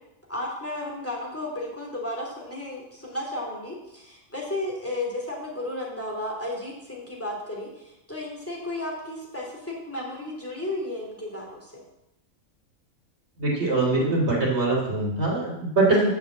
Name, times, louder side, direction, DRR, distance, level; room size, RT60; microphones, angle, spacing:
voice 1, 0.3-11.8, left 1 dB, 10° left, -3 dB, 2.9 m, -33 dB
voice 2, 13.4-16.1, right 2 dB, 50° right, -3 dB, 3.4 m, -23 dB
7.3 x 7.1 x 7.4 m, 0.88 s
omnidirectional pair, 1.5 m